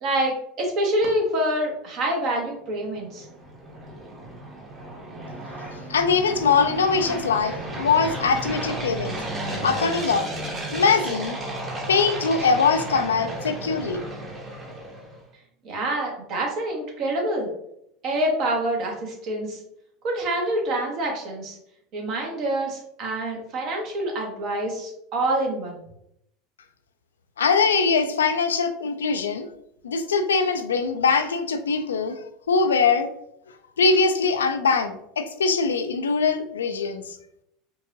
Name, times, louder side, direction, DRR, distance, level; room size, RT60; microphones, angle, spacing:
voice 1, 0.0-3.2 15.6-17.5 18.0-19.6 20.0-21.5 21.9-25.8, right 1 dB, 55° right, 0 dB, 1.3 m, -26 dB
sound 1, 2.9-15.2, right 1 dB, 30° right, 1.3 m, -33 dB
voice 2, 5.9-9.2 9.6-10.3 10.7-11.4 11.9-14.0 27.4-29.5 29.8-32.2 32.5-33.1 33.8-37.2, left 5 dB, 85° left, 8 dB, 0.4 m, -22 dB
4.5 x 2.6 x 2.8 m, 0.76 s
hypercardioid pair, 80°, 0 cm